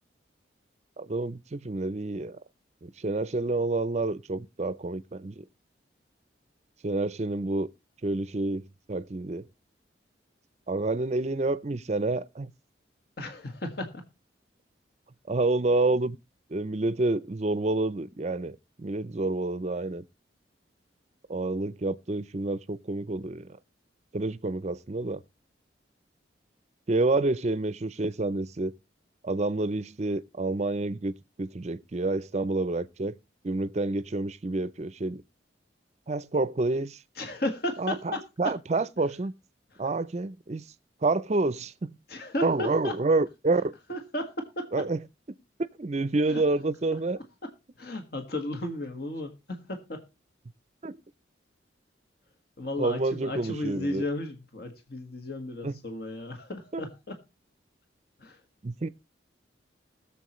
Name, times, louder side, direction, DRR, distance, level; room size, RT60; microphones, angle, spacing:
voice 1, 1.0-2.4 2.8-5.4 6.8-7.7 8.0-9.4 10.7-12.5 15.3-16.2 16.5-20.0 21.3-23.5 24.1-25.2 26.9-28.7 29.2-31.1 31.4-33.2 33.4-35.2 36.1-37.0 37.8-39.3 39.8-40.6 41.0-41.9 42.4-43.7 44.7-45.0 45.8-47.2 50.8-51.0 52.8-54.0 55.6-55.8 56.7-56.8 58.6-58.9, right 2 dB, 35° right, 0.5 m, -28 dB
voice 2, 13.2-14.0 37.2-38.2 42.1-43.0 43.9-44.9 46.3-46.4 47.4-47.5 47.8-50.0 52.6-57.2 58.2-58.4, left 1 dB, 55° left, 1.6 m, -34 dB
20.5 x 7.3 x 3.1 m
head